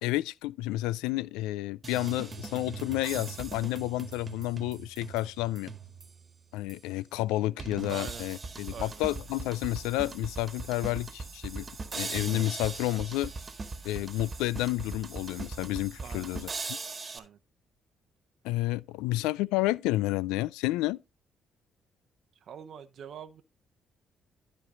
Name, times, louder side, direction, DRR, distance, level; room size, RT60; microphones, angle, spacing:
voice 1, 0.0-5.7 6.5-13.3 13.8-16.5 18.4-21.0, left 17 dB, 80° left, 0.3 m, -30 dB
sound 1, 1.8-6.3 6.7-6.8 7.6-17.2, right 4 dB, 40° right, 1.4 m, -40 dB
voice 2, 7.9-8.2 8.7-9.0 16.0-16.3 17.1-17.4 22.4-23.4, right 8 dB, 60° right, 0.8 m, -44 dB
12.0 x 4.5 x 3.8 m
hypercardioid pair, 50°, 0 cm